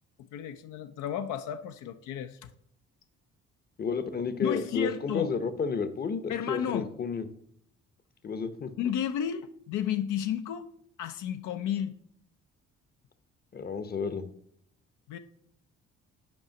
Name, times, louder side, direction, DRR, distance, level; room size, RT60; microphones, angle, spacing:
voice 1, 0.2-2.5 4.4-5.3 6.3-7.0 8.8-10.7 11.0-11.9 15.1-15.2, left 9 dB, 75° left, 8 dB, 0.5 m, -32 dB
voice 2, 3.8-7.2 8.2-8.7 13.5-14.3, left 5 dB, 30° left, 12 dB, 0.7 m, -31 dB
5.3 x 4.9 x 5.8 m, 0.70 s
supercardioid pair, 65°, 30 cm